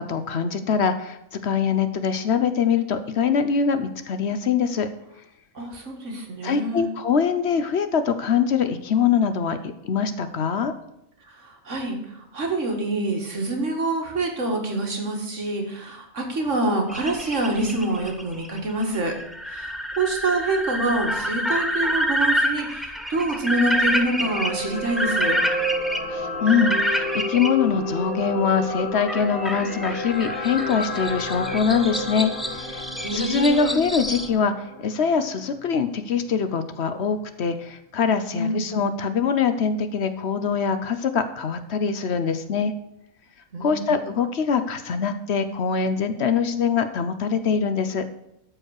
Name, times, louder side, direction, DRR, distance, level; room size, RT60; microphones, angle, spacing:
voice 1, 0.0-4.9 6.4-10.7 26.1-32.8 33.1-42.7 43.6-48.0, left 6 dB, 60° left, 10 dB, 0.9 m, -23 dB
voice 2, 5.6-6.9 11.3-19.2 19.5-25.4 33.0-33.8 38.3-38.7 43.5-44.0, right 2 dB, 60° right, 2 dB, 2.2 m, -26 dB
sound 1, 16.9-27.5 29.1-34.3, equal, ahead, 0.4 m, -28 dB
sound 2, 23.5-35.8 36.1-36.3, left 1 dB, 90° left, 2.4 m, -31 dB
13.0 x 4.9 x 6.4 m, 0.80 s
omnidirectional pair, 1.4 m